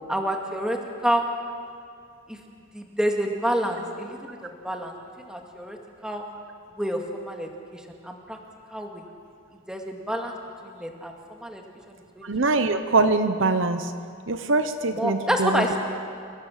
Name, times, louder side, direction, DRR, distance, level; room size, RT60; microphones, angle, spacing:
voice 1, 0.1-1.2 2.3-2.4 2.7-4.9 5.3-5.8 6.0-6.2 6.8-8.4 8.7-9.0 9.7-10.3 10.6-11.1 11.4-11.6 12.1-12.2 14.9-15.8, equal, 5° right, 1 dB, 2.2 m, -28 dB
voice 2, 12.2-13.9 14.3-15.7, right 3 dB, 60° right, 9 dB, 1.0 m, -23 dB
28.5 x 18.5 x 7.4 m, 2.3 s
head